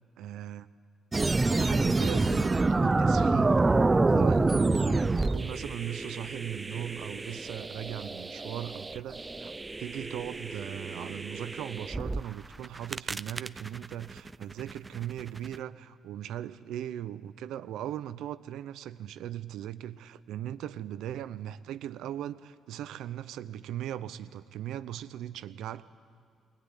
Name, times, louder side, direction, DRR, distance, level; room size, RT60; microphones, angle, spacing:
voice 1, 0.2-0.7 1.6-3.6 3.9-9.5 9.8-25.8, right 11 dB, 85° right, 13 dB, 0.8 m, -39 dB
sound 1, 1.1-12.2 12.6-15.6, right 3 dB, 20° right, 0.6 m, -28 dB
21.5 x 21.0 x 9.9 m, 2.1 s
cardioid pair, 90°, 0 cm